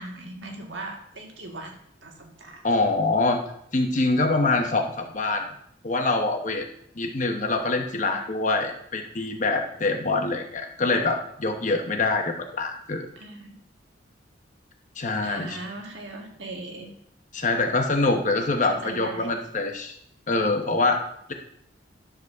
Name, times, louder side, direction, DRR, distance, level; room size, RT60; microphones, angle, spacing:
voice 1, 0.0-2.7 8.1-8.2 13.2-13.6 15.2-17.0 18.7-19.4, right 2 dB, 75° right, 1 dB, 1.7 m, -39 dB
voice 2, 2.6-3.4 3.7-5.5 5.8-6.7 6.9-13.1 15.0-15.6 17.3-20.0 20.3-21.0, left 3 dB, 40° left, 4 dB, 1.0 m, -24 dB
11.0 x 4.1 x 6.5 m, 0.71 s
head